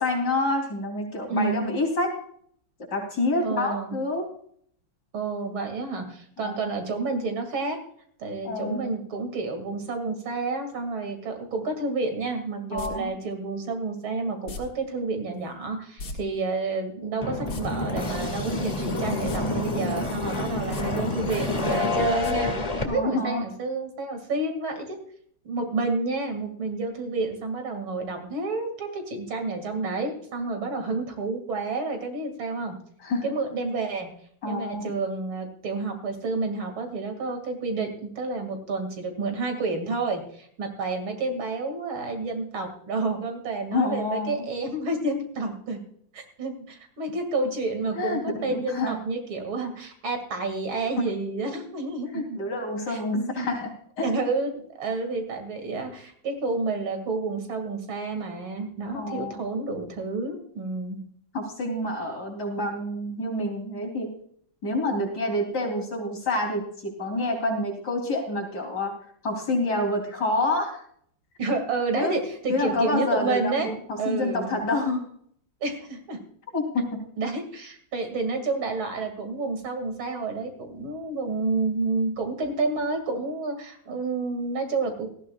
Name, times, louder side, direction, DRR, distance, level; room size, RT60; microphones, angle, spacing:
voice 1, 0.0-2.1 2.9-4.3 6.4-6.6 8.4-9.0 12.7-13.1 19.3-19.9 22.8-23.4 33.0-33.3 34.4-34.9 43.7-44.5 48.0-49.0 52.1-54.1 58.9-59.4 61.3-64.1 64.6-68.9 69.2-70.8 71.9-72.1 72.5-75.1 76.5-77.0, left 2 dB, 55° left, 1 dB, 3.8 m, -28 dB
voice 2, 1.3-1.7 3.4-4.0 5.1-7.8 8.2-22.5 22.9-25.0 25.4-32.8 33.2-34.1 34.4-45.8 46.1-52.4 52.9-53.5 54.0-61.0 71.4-74.6 75.6-76.2 77.2-85.1, right 3 dB, 75° right, 5 dB, 3.0 m, -30 dB
sound 1, 12.8-12.9 14.5-14.6 16.0-16.2 16.4-16.5 17.3-17.6 19.2-19.4 19.8-19.9 20.6-20.8 22.2-22.3 22.7-22.8, left 3 dB, 80° left, 2.6 m, -35 dB
sound 2, 17.2-22.8, left 2 dB, 20° left, 1.8 m, -28 dB
18.5 x 14.0 x 2.3 m, 0.63 s
omnidirectional pair, 2.2 m